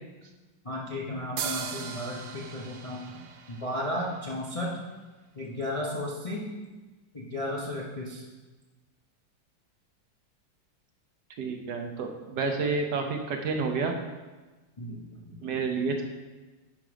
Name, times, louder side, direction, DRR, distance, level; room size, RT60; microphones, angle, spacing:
voice 1, 0.6-3.0 3.5-4.7 5.3-6.5 7.1-8.2 14.8-15.4, left 1 dB, 30° left, -3 dB, 0.6 m, -34 dB
sound 1, 1.4-4.9, right 6 dB, 85° right, 1.6 m, -39 dB
voice 2, 11.4-13.9 15.4-16.0, right 4 dB, 65° right, 4 dB, 1.2 m, -29 dB
10.5 x 5.0 x 5.0 m, 1.2 s
omnidirectional pair, 2.3 m